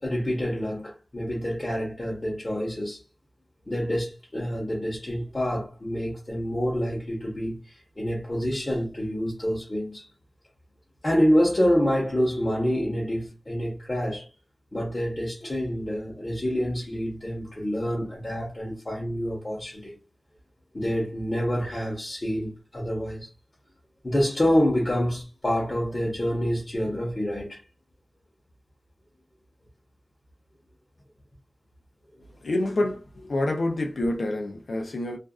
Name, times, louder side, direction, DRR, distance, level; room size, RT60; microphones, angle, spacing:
voice 1, 0.0-3.0 3.7-10.1 11.0-14.3 14.7-19.9 20.7-23.3 24.0-27.6, equal, 35° left, 1.0 m, -27 dB
voice 2, 32.4-35.2, left 1 dB, 90° left, 0.6 m, -27 dB
2.6 x 2.3 x 2.3 m
wide cardioid pair, 85°, 0 cm